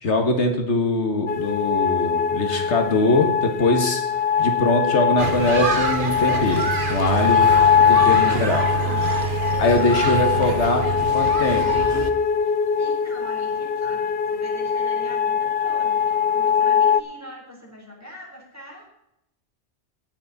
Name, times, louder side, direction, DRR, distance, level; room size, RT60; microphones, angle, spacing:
voice 1, 0.0-4.0 4.4-7.5 7.9-8.7 9.6-10.9 11.1-11.8, left 2 dB, 80° left, 5 dB, 1.8 m, -22 dB
sound 1, 1.3-17.0, left 7 dB, 65° left, 0.8 m, -22 dB
sound 2, 5.2-12.1, right 5 dB, 50° right, 1.1 m, -26 dB
voice 2, 7.8-9.0 9.5-11.1 12.8-18.9, equal, 15° right, -2 dB, 3.8 m, -43 dB
18.0 x 7.6 x 4.1 m, 0.81 s
omnidirectional pair, 1.2 m